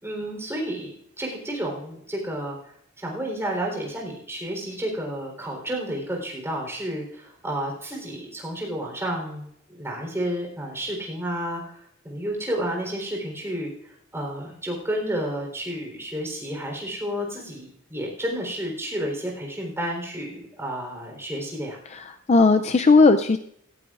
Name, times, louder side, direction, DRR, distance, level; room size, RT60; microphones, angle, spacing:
voice 1, 0.0-2.6 3.0-13.7 14.1-21.8, right 1 dB, 15° right, 0 dB, 3.9 m, -31 dB
voice 2, 21.9-23.4, left 3 dB, 35° left, 8 dB, 0.4 m, -17 dB
17.0 x 15.0 x 2.5 m, 0.70 s
head